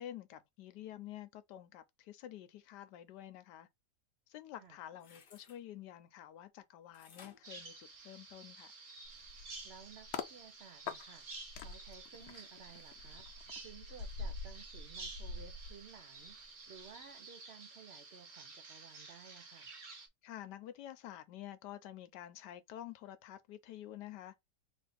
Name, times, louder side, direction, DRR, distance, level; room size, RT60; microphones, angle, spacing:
voice 1, 0.0-3.7 4.3-8.7 20.2-24.4, left 12 dB, 85° left, 1.3 m, -49 dB
sound 1, 4.7-5.6 6.9-8.5 9.0-9.1, left 5 dB, 45° left, 0.7 m, -60 dB
Bird vocalization bird call bird song, 7.4-20.1, right 3 dB, 35° right, 0.8 m, -52 dB
sound 2, 9.0-10.3 10.9-16.4 16.8-17.0, left 4 dB, 70° left, 1.0 m, -46 dB
voice 2, 9.6-11.3 11.6-13.3 13.6-19.7, right 6 dB, 85° right, 0.5 m, -56 dB
3.5 x 2.6 x 4.0 m
omnidirectional pair, 1.8 m